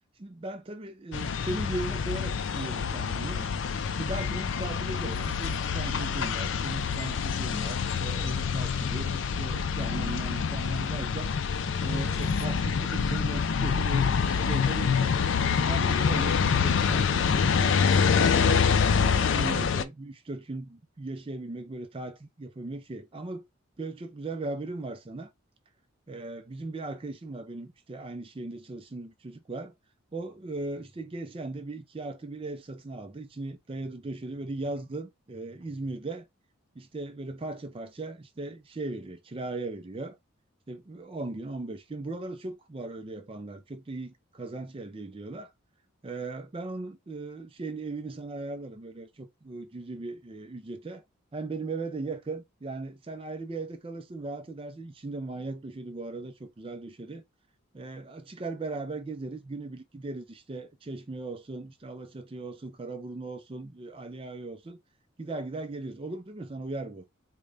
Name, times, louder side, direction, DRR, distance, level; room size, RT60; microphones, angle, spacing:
voice 1, 0.2-3.5 4.0-11.3 11.8-15.3 15.6-17.8 18.1-23.5 23.8-25.3 26.1-29.7 30.1-36.3 36.7-40.2 40.7-45.5 46.0-51.0 51.3-57.2 57.7-64.8 65.2-67.0, right 2 dB, 25° right, 0.4 m, -38 dB
sound 1, 1.1-19.8, left 6 dB, 60° left, 0.4 m, -26 dB
3.8 x 2.2 x 3.3 m
head